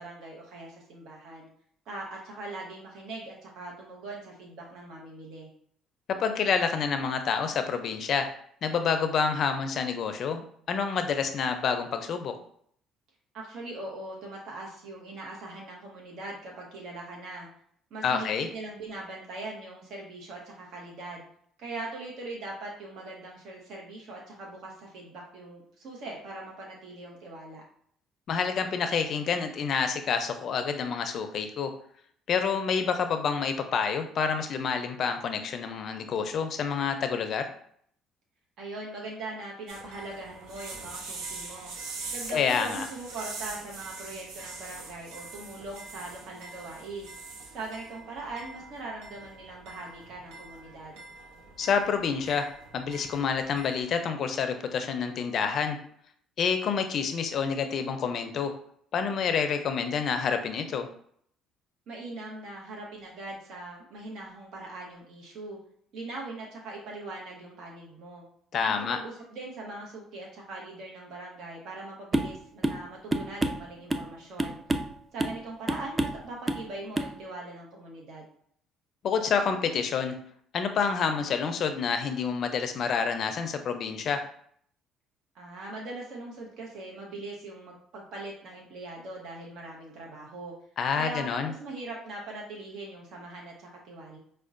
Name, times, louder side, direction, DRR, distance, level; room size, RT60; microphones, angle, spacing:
voice 1, 0.0-1.5 1.9-5.5 13.3-17.5 17.9-21.2 21.6-27.6 38.6-41.7 42.1-47.1 47.5-51.0 61.9-65.6 65.9-68.2 68.9-74.6 75.1-78.3 85.3-90.5 90.9-94.2, right 2 dB, 65° right, -2 dB, 0.9 m, -41 dB
voice 2, 6.2-8.3 8.6-12.3 18.0-18.5 28.3-31.7 32.3-37.5 42.3-42.9 51.6-52.5 52.7-55.8 56.4-58.5 58.9-60.9 68.5-69.0 79.0-80.1 80.5-84.2 90.8-91.5, left 6 dB, 55° left, 7 dB, 0.4 m, -28 dB
sound 1, 39.7-53.8, right 3 dB, 85° right, 0.6 m, -43 dB
sound 2, 72.1-72.4 72.6-72.8 73.1-74.1 74.4-74.9 75.2-75.4 75.7-76.2 76.5-76.7 77.0-77.1, right 2 dB, 20° right, 0.3 m, -28 dB
5.2 x 2.2 x 2.5 m, 0.63 s
cardioid pair, 110°, 0 cm